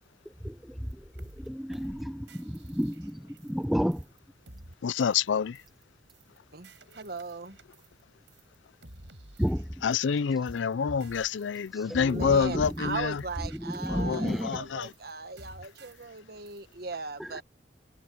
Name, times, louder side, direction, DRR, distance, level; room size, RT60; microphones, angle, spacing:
voice 1, 0.4-0.9 1.2-4.0 9.4-9.7 11.7-12.3 13.6-14.6 17.2-17.4, equal, ahead, 0.6 m, -32 dB
sound 1, 0.9-1.0 1.2-1.5 1.7-2.0 2.3-3.7 3.9-4.2 4.5-4.7 5.0-5.3 5.6-5.8 6.1-6.4 6.6-8.0 8.3-8.6 8.8-10.2 10.5-10.7 11.0-11.8 12.1-12.4 12.6-12.9 13.2-14.6 14.8-15.1 15.4-16.2 16.5-16.7, right 2 dB, 75° right, 7.9 m, -53 dB
voice 2, 4.8-5.6 9.8-13.2 13.9-14.9, left 6 dB, 85° left, 0.4 m, -27 dB
voice 3, 6.9-7.6 11.8-17.4, right 3 dB, 55° right, 1.2 m, -38 dB
head